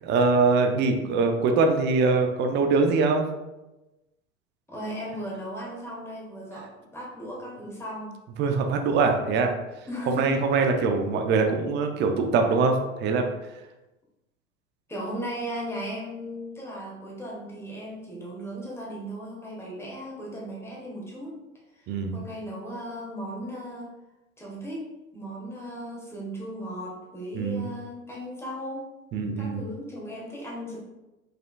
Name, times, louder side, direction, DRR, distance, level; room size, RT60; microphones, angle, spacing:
voice 1, 0.0-3.2 8.4-9.5 10.1-13.2 21.9-22.2 27.3-27.7 29.1-29.6, right 4 dB, 25° right, 4 dB, 0.6 m, -23 dB
voice 2, 4.7-8.1 9.9-10.4 14.9-21.3 21.8-23.9 24.4-28.9 29.4-30.8, equal, 5° left, -4 dB, 1.6 m, -36 dB
5.1 x 4.2 x 2.4 m, 1.0 s
figure-of-eight pair, 85°, 40 cm